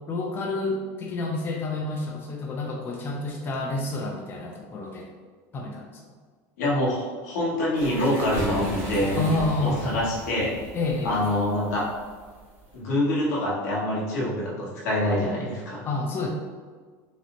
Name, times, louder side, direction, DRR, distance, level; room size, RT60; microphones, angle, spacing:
voice 1, 0.1-5.1 5.5-5.9 9.2-9.9 10.7-11.1 15.8-16.3, left 2 dB, 25° left, -1 dB, 0.5 m, -29 dB
voice 2, 6.6-9.3 9.6-10.6 11.0-11.9 12.7-15.8, left 1 dB, 90° left, -5 dB, 1.1 m, -25 dB
sound 1, 7.7-12.8, right 1 dB, 20° right, 1.1 m, -41 dB
Boom, 8.3-11.3, right 2 dB, 45° right, 1.4 m, -36 dB
4.1 x 2.0 x 2.9 m, 1.5 s
supercardioid pair, 135°, 9 cm